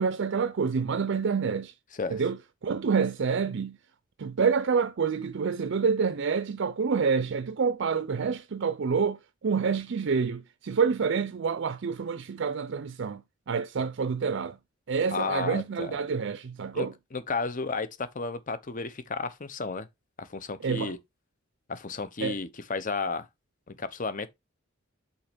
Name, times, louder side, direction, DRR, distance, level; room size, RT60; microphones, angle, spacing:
voice 1, 0.0-1.7 2.1-3.8 4.2-14.6 14.9-16.9 20.6-20.9 22.2-22.4, right 5 dB, 60° right, 0.5 m, -28 dB
voice 2, 15.1-15.9 16.7-19.9 20.2-21.0 21.7-23.3 23.7-24.3, left 4 dB, 40° left, 0.9 m, -33 dB
5.6 x 4.2 x 5.2 m
head